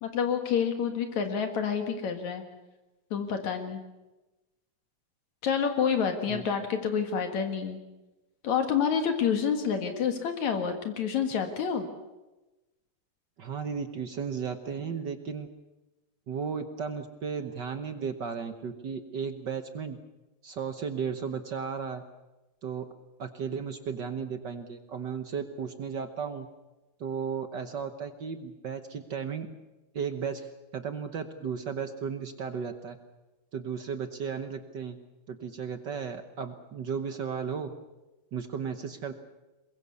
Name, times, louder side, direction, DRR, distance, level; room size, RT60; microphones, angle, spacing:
voice 1, 0.0-2.4 3.1-3.8 5.4-7.8 8.4-11.9, left 7 dB, 70° left, 6 dB, 3.1 m, -28 dB
voice 2, 13.4-15.5 16.3-20.0 20.4-22.0 22.6-22.9 23.2-26.5 27.0-29.5 29.9-33.0 33.5-35.0 35.3-37.7 38.3-39.1, right 6 dB, 60° right, 8 dB, 1.1 m, -35 dB
23.0 x 21.5 x 7.0 m, 1.1 s
omnidirectional pair, 3.4 m